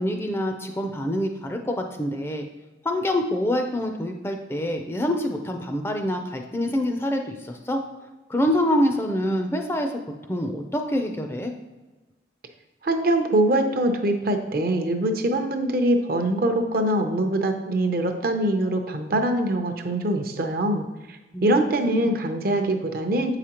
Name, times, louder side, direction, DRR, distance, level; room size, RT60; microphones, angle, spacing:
voice 1, 0.0-2.4 2.8-7.8 8.3-9.9 10.3-11.5 21.3-21.5 21.8-22.1, left 1 dB, 15° left, 4 dB, 0.4 m, -26 dB
voice 2, 12.8-23.4, right 1 dB, 55° right, 5 dB, 0.6 m, -23 dB
7.6 x 4.9 x 2.9 m, 1.2 s
head